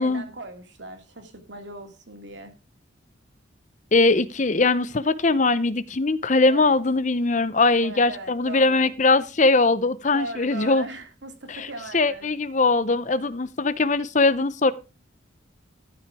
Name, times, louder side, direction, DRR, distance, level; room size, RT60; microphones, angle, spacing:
voice 1, 0.0-2.5 6.5-6.8 7.8-8.9 10.1-12.3, right 2 dB, 65° right, 5 dB, 2.4 m, -39 dB
voice 2, 3.9-10.9 11.5-11.7 11.9-14.7, left 3 dB, 40° left, 15 dB, 0.7 m, -21 dB
14.0 x 5.9 x 4.8 m, 0.30 s
head